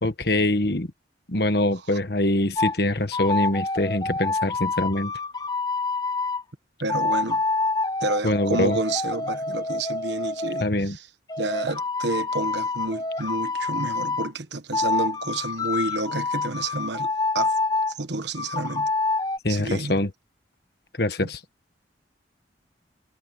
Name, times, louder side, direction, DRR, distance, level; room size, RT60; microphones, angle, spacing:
voice 1, 0.0-0.9 1.3-5.1 8.2-8.8 10.6-11.0 19.4-20.1 21.0-21.4, left 1 dB, 55° left, 1.5 m, -24 dB
sound 1, 2.6-2.8 3.1-6.4 6.9-10.6 11.3-14.3 14.7-17.9 18.3-19.4, left 3 dB, 20° left, 0.6 m, -27 dB
voice 2, 6.8-7.4 8.0-11.1 11.4-17.5 17.9-18.9 19.5-20.0, right 2 dB, 70° right, 1.4 m, -30 dB
head